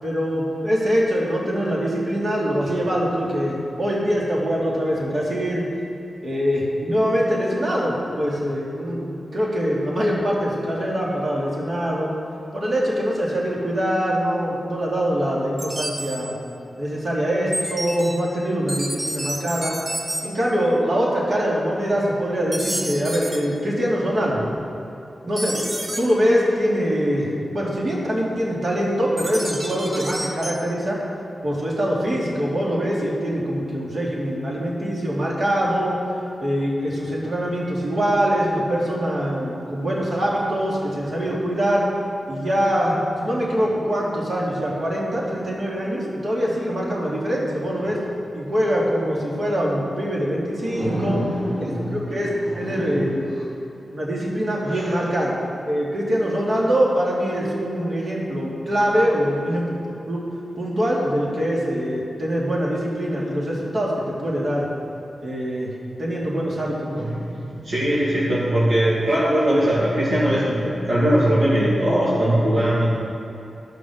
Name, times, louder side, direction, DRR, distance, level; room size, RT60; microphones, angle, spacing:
voice 1, 0.0-5.6 6.2-12.1 12.5-16.3 16.8-19.7 20.2-24.4 25.2-25.6 26.0-31.0 31.4-36.0 36.4-41.9 42.3-48.0 48.3-51.2 51.6-52.3 52.6-53.5 53.9-55.3 55.6-59.6 60.1-60.2 60.6-64.7 65.2-65.7 66.0-67.1, equal, 55° right, -5 dB, 2.9 m, -23 dB
sound 1, 15.6-16.1 17.5-18.1 18.7-20.2 22.5-23.4 25.4-26.0 29.2-30.5, right 1 dB, 35° right, 1.9 m, -29 dB
voice 2, 50.7-52.2 52.5-53.1 54.7-54.9 67.2-72.9, right 1 dB, 75° right, -9 dB, 2.3 m, -21 dB
13.5 x 6.2 x 6.5 m, 2.8 s
wide cardioid pair, 80°, 0 cm